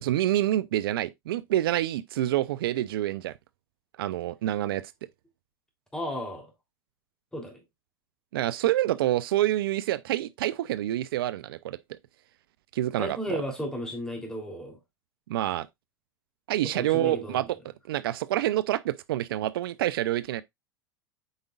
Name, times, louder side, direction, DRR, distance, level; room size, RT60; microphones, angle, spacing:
voice 1, 0.0-3.3 4.0-4.9 8.3-12.0 12.7-13.4 15.3-15.7 16.5-17.5 17.9-20.4, right 14 dB, 80° right, 0.4 m, -27 dB
voice 2, 5.9-6.5 7.3-7.6 13.0-14.8 16.7-17.4, equal, 5° left, 3.0 m, -34 dB
7.9 x 5.1 x 2.3 m
hypercardioid pair, 95°, 12 cm